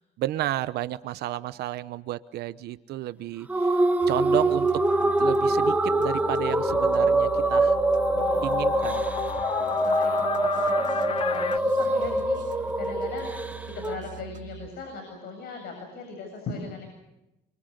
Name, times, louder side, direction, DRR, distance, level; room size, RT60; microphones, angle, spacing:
voice 1, 0.2-4.7 5.2-7.8 8.4-9.1, right 14 dB, 75° right, 13 dB, 1.0 m, -32 dB
sound 1, 3.5-14.0, right 2 dB, 10° right, 2.1 m, -24 dB
sound 2, 4.0-14.7, right 8 dB, 50° right, 2.5 m, -43 dB
sound 3, 5.0-11.6, left 7 dB, 35° left, 0.9 m, -32 dB
voice 2, 8.1-8.5 9.6-16.9, left 4 dB, 65° left, 4 dB, 7.6 m, -39 dB
29.0 x 24.5 x 6.7 m, 0.93 s
cardioid pair, 110°, 17 cm